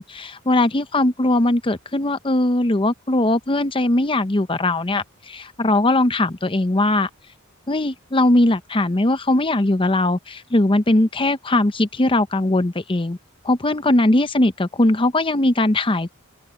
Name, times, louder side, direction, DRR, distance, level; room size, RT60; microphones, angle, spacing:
voice 1, 0.0-7.1 7.7-13.2 13.4-16.1, left 1 dB, 25° left, 0.8 m, -20 dB
open air
head